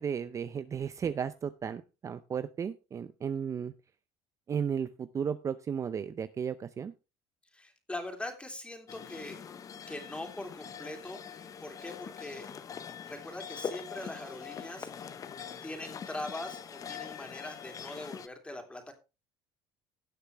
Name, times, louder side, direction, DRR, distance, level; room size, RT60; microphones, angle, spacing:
voice 1, 0.0-3.7 4.5-6.9, right 7 dB, 30° right, 13 dB, 0.6 m, -34 dB
voice 2, 7.5-9.4 9.9-12.5 13.1-14.9 15.6-18.9, left 1 dB, 10° left, 4 dB, 3.2 m, -42 dB
sound 1, 8.9-18.3, left 7 dB, 35° left, 1.0 m, -43 dB
17.5 x 6.6 x 3.4 m, 0.29 s
supercardioid pair, 110°, 10 cm